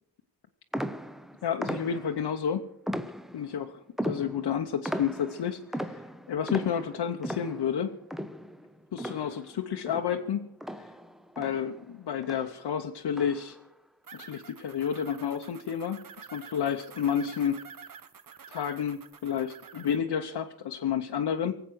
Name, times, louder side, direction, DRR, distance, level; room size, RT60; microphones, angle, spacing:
sound 1, 0.7-2.3 2.9-3.6 4.0-9.6 9.9-11.9 12.2-12.6 13.1-13.6, equal, ahead, 0.4 m, -37 dB
voice 1, 1.4-2.7 3.3-6.0 6.3-8.0 8.9-10.5 10.8-10.9 11.4-13.6 14.1-16.0 16.3-17.6 18.5-21.6, left 8 dB, 85° left, 4 dB, 0.8 m, -30 dB
sound 2, 14.0-20.0, right 7 dB, 55° right, 0.9 m, -49 dB
23.5 x 8.1 x 6.1 m, 0.78 s
wide cardioid pair, 150°, 40 cm